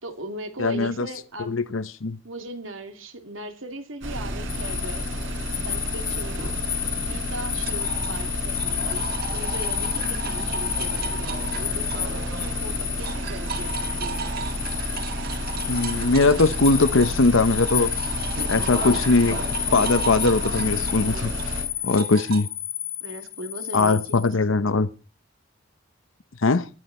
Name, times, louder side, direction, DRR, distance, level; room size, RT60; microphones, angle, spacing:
voice 1, 0.0-1.5 2.2-5.1 5.6-6.4 6.9-9.0 9.3-14.6 23.0-24.3, right 1 dB, 90° right, 2.9 m, -38 dB
voice 2, 0.6-1.1 1.5-2.2 15.7-17.9 18.5-19.4 19.7-22.5 23.7-24.9 26.4-26.7, left 3 dB, 90° left, 0.9 m, -21 dB
sound 1, 4.0-21.6, equal, 70° right, 6.6 m, -31 dB
sound 2, 4.5-24.3, left 10 dB, 45° left, 1.5 m, -31 dB
sound 3, 7.6-12.6 12.9-22.4, right 5 dB, 50° right, 1.9 m, -36 dB
20.0 x 13.0 x 4.3 m
head